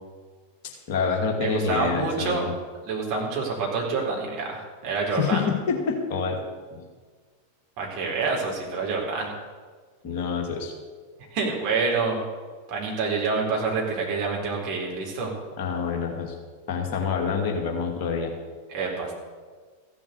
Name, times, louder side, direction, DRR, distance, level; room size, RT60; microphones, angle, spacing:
voice 1, 0.6-2.5 5.1-6.4 6.8-6.9 10.0-10.7 15.6-16.3 16.7-18.3, left 5 dB, 45° left, 1 dB, 2.4 m, -27 dB
voice 2, 1.4-2.5 2.8-5.4 7.8-9.3 11.3-12.2 12.7-15.3 18.7-19.1, right 4 dB, 45° right, -2 dB, 4.1 m, -27 dB
15.0 x 7.2 x 8.2 m, 1.5 s
figure-of-eight pair, 90°, 0 cm